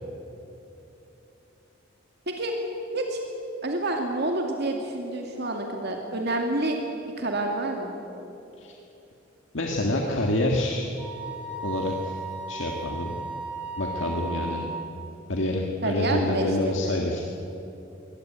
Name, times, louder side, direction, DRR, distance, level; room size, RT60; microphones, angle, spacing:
voice 1, 2.3-2.6 2.9-3.2 3.6-6.8 7.2-7.9 14.1-14.6 15.8-16.9, right 2 dB, 60° right, 2 dB, 2.3 m, -28 dB
voice 2, 9.5-10.9 11.6-12.1 12.5-13.2 13.8-14.6 15.3-17.2, left 1 dB, 70° left, 0 dB, 1.9 m, -27 dB
Wind instrument woodwind instrument, 11.0-14.8, right 3 dB, 10° right, 5.4 m, -35 dB
24.0 x 18.0 x 9.2 m, 3.0 s
head